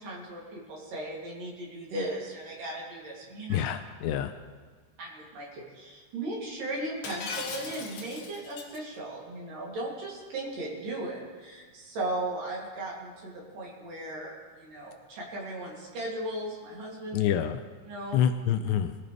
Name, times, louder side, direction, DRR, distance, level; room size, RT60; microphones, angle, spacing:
voice 1, 0.0-3.6 5.0-17.3 17.9-18.2, right 1 dB, 50° right, -4 dB, 4.2 m, -37 dB
voice 2, 3.5-4.3 17.1-17.6 18.1-18.9, left 9 dB, 80° left, 8 dB, 2.6 m, -27 dB
Shatter, 7.0-8.8, left 5 dB, 65° left, 2.2 m, -38 dB
22.0 x 14.5 x 3.4 m, 1.5 s
omnidirectional pair, 5.2 m